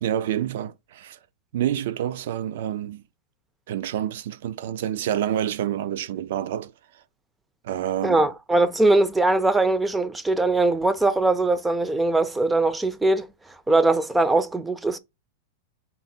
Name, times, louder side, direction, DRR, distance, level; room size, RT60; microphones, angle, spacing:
voice 1, 0.0-1.2 1.5-3.0 3.7-7.0 7.6-8.2, right 11 dB, 70° right, 0.4 m, -28 dB
voice 2, 8.0-13.3 13.7-15.0, right 2 dB, 10° right, 0.4 m, -21 dB
4.0 x 2.0 x 4.2 m
supercardioid pair, 140°, 0 cm